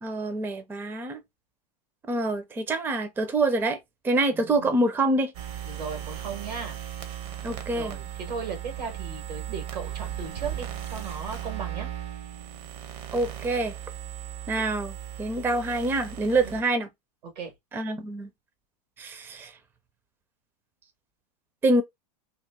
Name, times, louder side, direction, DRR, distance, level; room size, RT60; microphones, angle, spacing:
voice 1, 0.0-1.2 2.1-3.8 4.0-5.3 7.4-7.9 13.1-13.7 14.5-14.9 15.2-16.9 17.7-18.3 19.0-19.5 21.6-21.8, right 2 dB, 10° right, 0.4 m, -26 dB
voice 2, 4.3-4.7 5.7-6.8 7.7-11.9 16.4-16.5 17.2-17.5, right 5 dB, 90° right, 1.6 m, -37 dB
sound 1, 5.3-16.6, right 12 dB, 55° right, 0.8 m, -37 dB
2.9 x 2.4 x 3.5 m
hypercardioid pair, 125°, 20 cm